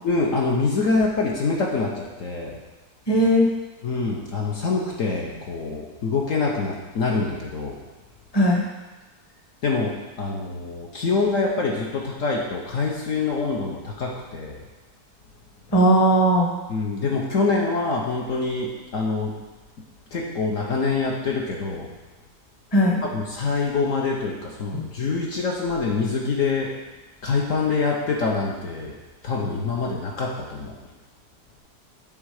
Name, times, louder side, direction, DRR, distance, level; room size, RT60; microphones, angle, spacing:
voice 1, 0.0-2.6 3.8-7.8 9.6-14.6 16.7-19.4 20.1-21.9 23.0-26.7 27.2-29.0 29.2-30.7, left 4 dB, 60° left, -2 dB, 1.1 m, -25 dB
voice 2, 3.1-3.5 8.3-8.6 15.7-16.5 22.7-23.0 24.7-24.8, equal, 20° left, -1 dB, 0.9 m, -17 dB
9.2 x 3.8 x 4.8 m, 1.2 s
omnidirectional pair, 1.8 m